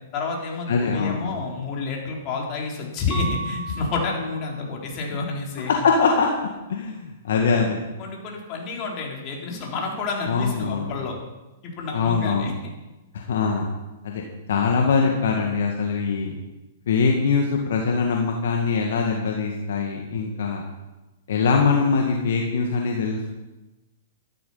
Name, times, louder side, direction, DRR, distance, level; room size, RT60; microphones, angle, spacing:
voice 1, 0.1-5.7 7.5-7.7 8.0-11.2 11.6-12.5, left 4 dB, 35° left, -1 dB, 4.1 m, -29 dB
voice 2, 0.7-1.3 5.7-6.3 6.7-7.8 10.3-11.0 11.9-12.5 13.1-13.7 14.0-14.2 14.5-16.4 16.9-20.6 21.3-23.4, left 5 dB, 70° left, 1 dB, 1.9 m, -22 dB
Mallet percussion, 3.1-4.9, right 5 dB, 20° right, 1.1 m, -35 dB
14.0 x 12.0 x 5.7 m, 1.1 s
hypercardioid pair, 140°, 0 cm